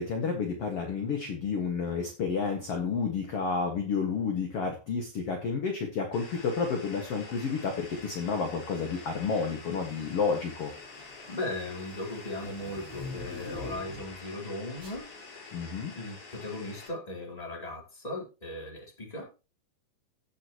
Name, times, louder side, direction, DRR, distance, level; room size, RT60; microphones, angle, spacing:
voice 1, 0.0-10.7 15.5-15.9, left 5 dB, 50° left, 3 dB, 2.1 m, -30 dB
sound 1, 6.1-16.9, left 3 dB, 85° left, 6.7 m, -47 dB
sound 2, 7.8-8.1 9.1-9.6 9.9-14.2 14.8-15.0, left 2 dB, 40° right, 6.1 m, -44 dB
voice 2, 11.3-15.0 15.9-19.3, left 2 dB, 10° left, -1 dB, 3.0 m, -37 dB
16.0 x 6.8 x 3.0 m, 0.29 s
omnidirectional pair, 4.4 m